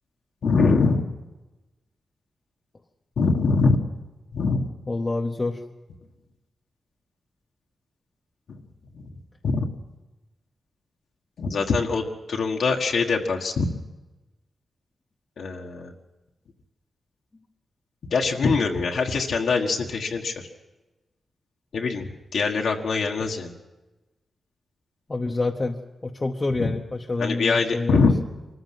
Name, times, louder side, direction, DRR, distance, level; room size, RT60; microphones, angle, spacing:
voice 1, 0.4-1.1 3.2-3.8 4.3-4.7 8.9-9.1 9.4-9.7 11.4-13.7 15.4-15.9 18.1-20.3 21.7-23.5 26.6-26.7 27.2-28.2, left 4 dB, 80° left, 0 dB, 1.5 m, -23 dB
voice 2, 4.9-5.6 25.1-25.8 26.0-28.1, left 3 dB, 25° left, 1 dB, 0.9 m, -27 dB
24.0 x 14.5 x 7.7 m, 1.1 s
wide cardioid pair, 125°, 0 cm